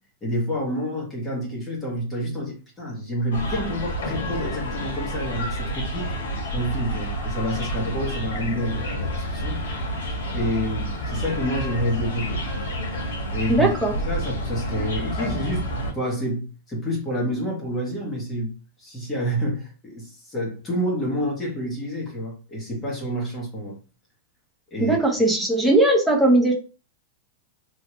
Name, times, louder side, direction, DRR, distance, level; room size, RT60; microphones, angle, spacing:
voice 1, 0.2-6.1 6.5-9.6 10.3-12.4 13.3-13.7 14.0-15.6 15.9-18.5 18.8-23.8 24.7-25.0, equal, 15° left, 1.4 m, -28 dB
sound 1, 3.3-15.9, equal, 90° left, 1.4 m, -29 dB
voice 2, 13.5-13.9 24.8-26.5, right 2 dB, ahead, 0.8 m, -19 dB
3.1 x 2.8 x 2.9 m
supercardioid pair, 160°, 0 cm